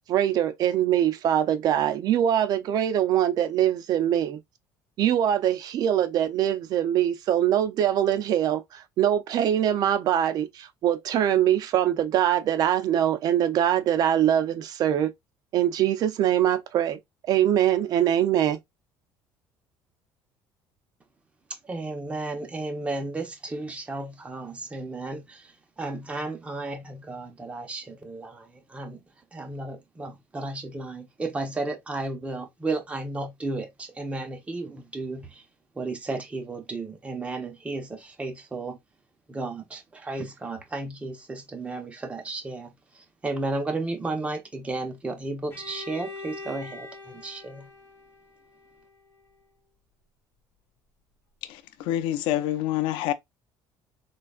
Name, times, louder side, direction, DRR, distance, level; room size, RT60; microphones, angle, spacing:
voice 1, 0.1-4.4 5.0-15.1 15.5-17.0 17.3-18.6, right 10 dB, 50° right, 0.6 m, -23 dB
voice 2, 21.5-29.0 29.3-35.4 35.7-38.8 39.3-47.7, right 2 dB, 15° right, 1.0 m, -33 dB
Bowed string instrument, 45.5-49.3, left 3 dB, 30° left, 2.1 m, -43 dB
voice 3, 51.4-53.1, left 13 dB, 80° left, 0.5 m, -27 dB
4.0 x 3.2 x 2.4 m
cardioid pair, 145°, 8 cm